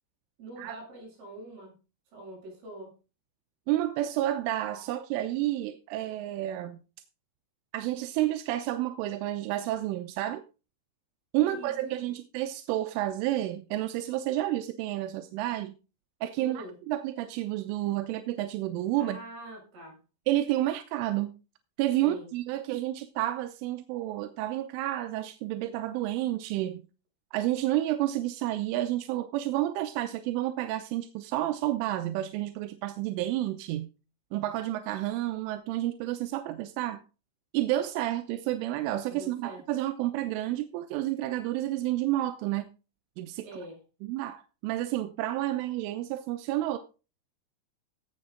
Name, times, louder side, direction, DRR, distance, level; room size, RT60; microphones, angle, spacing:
voice 1, 0.4-1.7 2.1-2.9 11.4-11.9 16.4-16.7 18.9-20.0 22.0-22.3 39.1-39.6 43.4-43.8, right 1 dB, 55° right, 8.2 m, -44 dB
voice 2, 3.7-6.8 7.7-10.4 11.3-15.8 16.2-19.2 20.3-21.3 21.8-26.8 27.3-33.9 34.3-37.0 37.5-42.7 43.2-43.5 44.0-46.8, right 14 dB, 90° right, 3.4 m, -30 dB
16.0 x 7.9 x 3.7 m
omnidirectional pair, 5.5 m